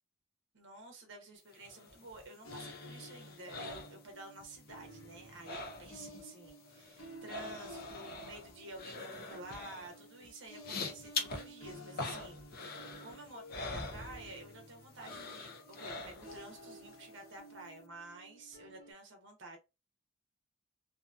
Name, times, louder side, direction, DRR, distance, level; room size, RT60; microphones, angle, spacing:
voice 1, 0.5-12.4 12.6-19.6, right 2 dB, 60° right, 3 dB, 0.7 m, -51 dB
sound 1, 1.5-4.6 4.8-6.2 6.5-14.6 15.0-16.5 16.9-17.0, left 3 dB, 50° left, 0.6 m, -44 dB
sound 2, 2.4-18.9, equal, 90° left, 1.0 m, -53 dB
2.7 x 2.3 x 2.4 m, 0.27 s
head